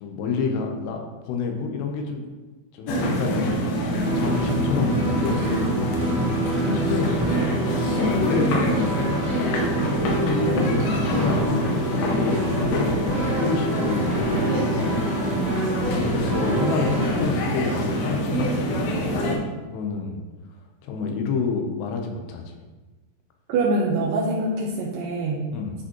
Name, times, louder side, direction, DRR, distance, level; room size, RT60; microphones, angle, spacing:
voice 1, 0.0-2.2 2.7-3.5 4.1-6.0 6.6-7.2 7.8-9.0 10.0-11.5 11.8-14.3 15.9-18.6 19.7-20.2 20.8-22.4 25.5-25.7, left 5 dB, 85° left, 3 dB, 3.1 m, -28 dB
sound 1, 2.9-19.4, equal, 70° left, 2.6 m, -25 dB
sound 2, 4.0-17.1, right 1 dB, 25° right, 1.2 m, -28 dB
voice 2, 6.6-7.0 10.0-11.3 15.2-16.7 23.5-25.4, right 2 dB, 75° right, -4 dB, 2.1 m, -27 dB
10.5 x 5.1 x 3.0 m, 1.2 s
omnidirectional pair, 4.8 m